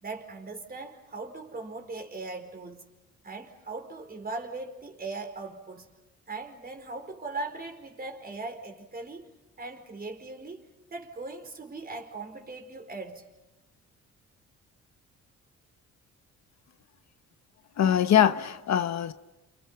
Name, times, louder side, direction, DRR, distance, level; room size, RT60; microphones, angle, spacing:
voice 1, 0.0-2.9 3.2-5.9 6.3-9.3 9.6-13.3, right 3 dB, 30° right, 4.7 m, -39 dB
voice 2, 17.8-19.1, left 10 dB, 60° left, 1.2 m, -23 dB
29.5 x 29.5 x 5.8 m
cardioid pair, 90°, 30 cm